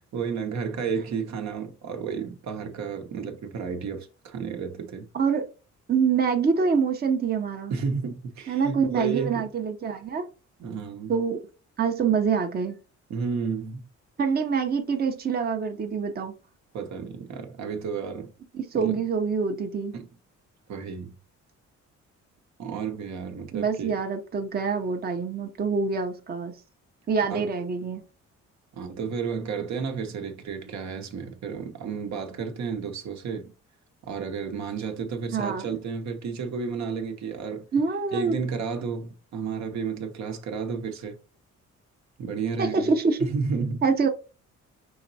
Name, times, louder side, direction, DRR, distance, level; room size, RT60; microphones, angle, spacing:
voice 1, 0.0-5.1 7.7-9.5 10.6-11.1 13.1-13.8 16.7-18.3 18.7-19.0 19.9-20.1 20.7-21.1 22.6-24.0 27.3-27.5 28.7-33.5 34.1-37.6 38.1-41.2 42.2-42.9 43.2-43.8, right 5 dB, 65° right, 0.9 m, -32 dB
voice 2, 5.1-5.5 5.9-7.7 8.5-10.2 11.1-11.4 11.8-12.7 14.2-16.3 18.5-19.9 23.5-26.6 27.1-28.0 35.3-35.7 37.7-38.4 42.6-43.3 43.8-44.1, right 5 dB, 30° right, 0.7 m, -25 dB
5.6 x 3.0 x 2.7 m
cardioid pair, 90°, 30 cm